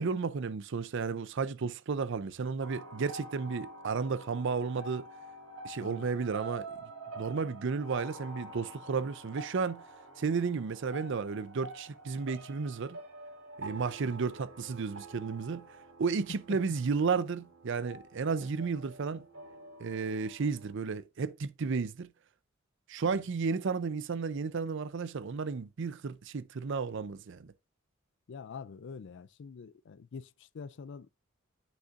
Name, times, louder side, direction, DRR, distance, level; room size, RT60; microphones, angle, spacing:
voice 1, 0.0-5.1 5.6-6.7 7.2-9.8 10.2-13.0 13.6-15.6 16.0-19.2 19.8-22.1 22.9-27.5, right 5 dB, 60° right, 0.5 m, -33 dB
sound 1, 2.6-20.7, right 2 dB, 85° right, 3.7 m, -47 dB
voice 2, 28.3-31.1, left 5 dB, 60° left, 0.4 m, -46 dB
10.0 x 6.5 x 2.5 m
head